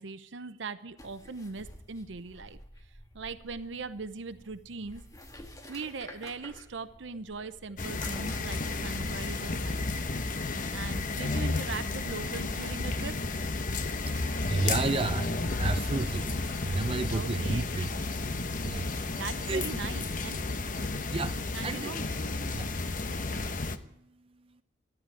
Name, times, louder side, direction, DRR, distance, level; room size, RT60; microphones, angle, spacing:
voice 1, 0.0-2.6 3.1-5.0 5.7-10.0 10.7-13.1 17.1-17.7 19.1-20.4 21.5-22.1, right 4 dB, 75° right, 11 dB, 0.8 m, -40 dB
sound 1, 1.0-11.0, left 1 dB, 20° left, 1.7 m, -51 dB
sound 2, 7.8-23.8, left 3 dB, 45° left, 1.0 m, -32 dB
voice 2, 14.2-15.3 15.6-16.3 16.6-17.9 18.6-18.9 19.5-19.7 21.1-21.3 21.6-21.9 22.5-22.7, right 3 dB, 30° right, 12 dB, 0.5 m, -31 dB
14.0 x 10.5 x 9.8 m, 0.77 s
head